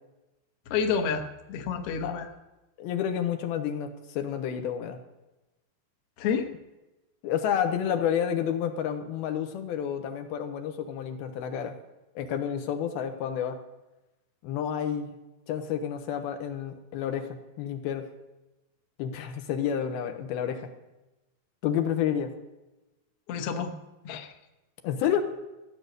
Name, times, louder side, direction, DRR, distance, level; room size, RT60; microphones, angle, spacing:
voice 1, 0.7-2.3 6.2-6.5 23.3-23.8 24.0-24.3, left 6 dB, 70° left, 5 dB, 1.4 m, -29 dB
voice 2, 2.8-5.0 7.2-11.7 12.2-13.6 14.4-15.2 15.5-17.3 17.6-18.0 19.0-20.6 21.6-22.3 24.8-25.2, left 9 dB, 85° left, 5 dB, 3.0 m, -30 dB
15.0 x 9.1 x 6.8 m, 1.0 s
omnidirectional pair, 4.3 m